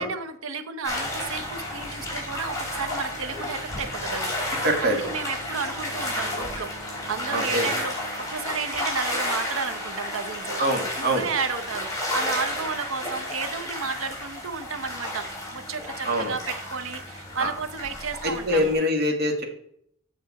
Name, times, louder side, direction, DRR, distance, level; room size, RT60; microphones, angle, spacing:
voice 1, 0.0-4.4 4.8-6.7 7.1-10.6 11.0-18.7, right 5 dB, 80° right, 9 dB, 0.8 m, -32 dB
sound 1, 0.8-18.7, left 1 dB, 15° left, 3.3 m, -32 dB
sound 2, 2.6-10.4, right 5 dB, 55° left, 1.2 m, -50 dB
voice 2, 4.5-5.0 7.3-7.7 10.6-11.3 16.1-16.4 17.4-17.5 18.2-19.4, equal, 55° right, 2 dB, 1.7 m, -24 dB
8.5 x 6.4 x 4.1 m, 0.70 s
head